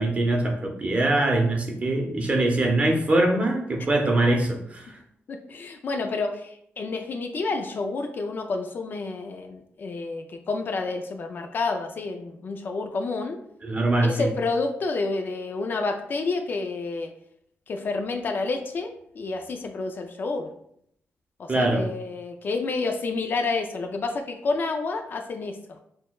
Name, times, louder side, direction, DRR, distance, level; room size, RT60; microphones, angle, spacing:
voice 1, 0.0-5.0 13.6-14.3 21.5-21.9, right 2 dB, 30° right, 2 dB, 0.6 m, -23 dB
voice 2, 5.3-13.4 14.0-17.1 17.7-20.5 21.4-25.8, left 3 dB, 50° left, 5 dB, 0.3 m, -29 dB
6.0 x 2.1 x 2.3 m, 0.71 s
wide cardioid pair, 140°, 4 cm